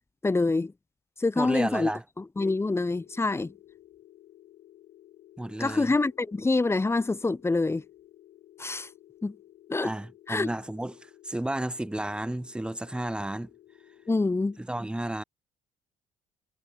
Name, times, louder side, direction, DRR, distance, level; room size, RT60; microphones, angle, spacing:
voice 1, 0.2-0.7 1.2-1.9 2.4-3.5 5.6-7.8 8.6-8.9 9.2-9.3 9.7-9.9 10.3-10.5 14.1-14.6, left 3 dB, 15° left, 1.0 m, -26 dB
voice 2, 1.4-2.0 5.4-5.9 9.8-13.5 14.6-15.2, right 1 dB, 5° right, 1.0 m, -32 dB
sound 1, 2.8-14.6, left 13 dB, 70° left, 2.8 m, -55 dB
supercardioid pair, 75°, 16 cm